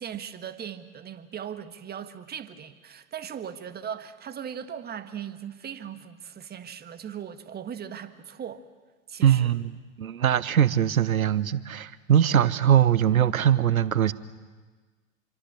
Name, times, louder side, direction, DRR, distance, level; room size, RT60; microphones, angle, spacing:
voice 1, 0.0-8.7 9.1-9.5, right 8 dB, 25° right, 10 dB, 1.6 m, -38 dB
voice 2, 9.2-14.1, right 10 dB, 80° right, 17 dB, 1.1 m, -22 dB
27.0 x 24.5 x 7.1 m, 1.4 s
figure-of-eight pair, 95°, 41 cm